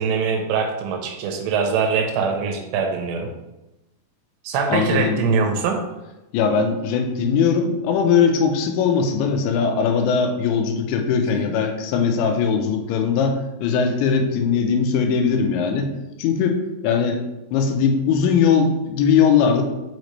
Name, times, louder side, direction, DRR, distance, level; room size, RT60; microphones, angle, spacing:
voice 1, 0.0-3.3 4.4-5.8, right 5 dB, 80° right, 3 dB, 2.8 m, -22 dB
voice 2, 4.7-5.2 6.3-15.9 16.2-17.2 17.5-19.6, left 6 dB, 90° left, 5 dB, 3.0 m, -20 dB
6.5 x 5.0 x 3.1 m, 1.0 s
omnidirectional pair, 5.2 m